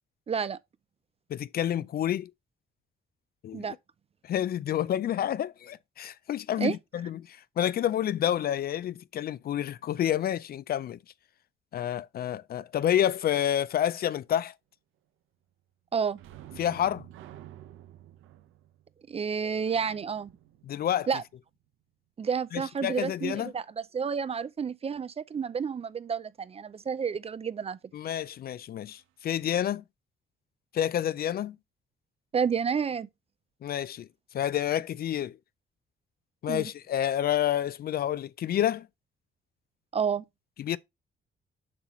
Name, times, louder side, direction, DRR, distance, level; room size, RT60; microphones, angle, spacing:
voice 1, 0.3-0.6 3.5-3.7 6.6-6.7 15.9-16.2 19.1-20.3 21.1-21.2 22.2-23.6 23.9-27.8 32.3-33.1 36.5-36.6 39.9-40.2, right 6 dB, 30° right, 0.4 m, -30 dB
voice 2, 1.3-2.3 3.4-3.7 4.2-11.0 11.7-14.5 16.6-17.1 20.6-21.1 22.5-23.5 27.9-29.8 30.7-31.6 33.6-35.4 36.4-38.9 40.6-40.8, left 10 dB, 50° left, 0.4 m, -29 dB
sound 1, 16.1-21.5 28.9-29.0 29.4-29.6, right 12 dB, 85° right, 0.7 m, -50 dB
7.5 x 5.7 x 3.0 m
cardioid pair, 90°, 20 cm